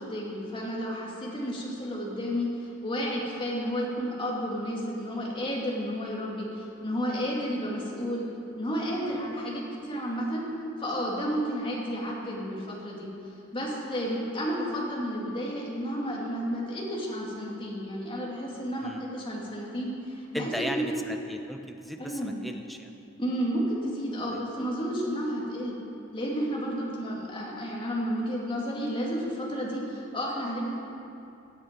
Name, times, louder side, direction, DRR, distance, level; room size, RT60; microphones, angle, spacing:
voice 1, 0.0-2.5 2.8-8.2 8.5-10.4 10.8-13.1 13.5-21.0 22.0-22.4 23.2-25.7 26.1-30.7, equal, 25° left, -4 dB, 2.4 m, -31 dB
voice 2, 20.3-22.9 24.3-24.4, equal, ahead, 4 dB, 0.7 m, -37 dB
16.5 x 9.2 x 5.2 m, 2.7 s
head